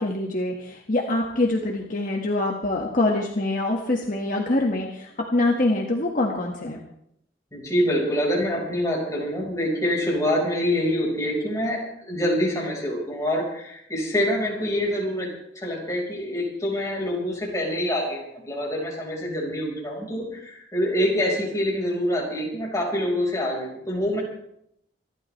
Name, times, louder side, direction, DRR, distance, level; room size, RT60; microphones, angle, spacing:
voice 1, 0.0-6.8, left 2 dB, 50° left, -1 dB, 1.7 m, -24 dB
voice 2, 7.5-15.3 15.5-24.2, equal, 20° left, -3 dB, 4.8 m, -26 dB
26.0 x 12.5 x 3.3 m, 0.74 s
head